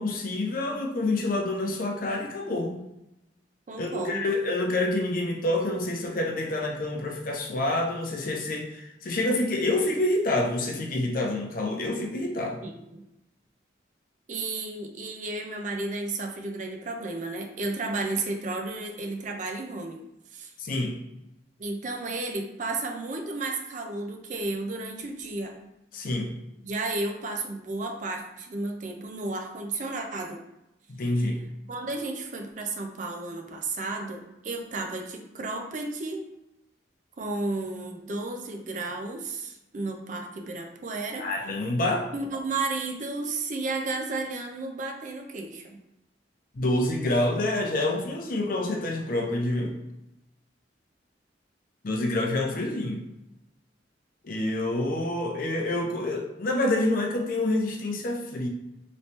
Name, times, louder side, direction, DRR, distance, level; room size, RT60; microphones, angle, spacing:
voice 1, 0.0-2.8 3.8-12.6 20.6-21.0 25.9-26.3 30.9-31.4 41.2-42.1 46.5-49.7 51.8-53.0 54.2-58.5, left 2 dB, 50° left, 1 dB, 0.6 m, -27 dB
voice 2, 3.7-4.2 12.6-13.0 14.3-20.0 20.3-20.5 21.6-25.6 26.6-30.4 31.7-36.2 37.2-41.3 42.1-45.8, right 3 dB, 40° right, 3 dB, 0.4 m, -33 dB
3.1 x 3.0 x 2.8 m, 0.90 s
head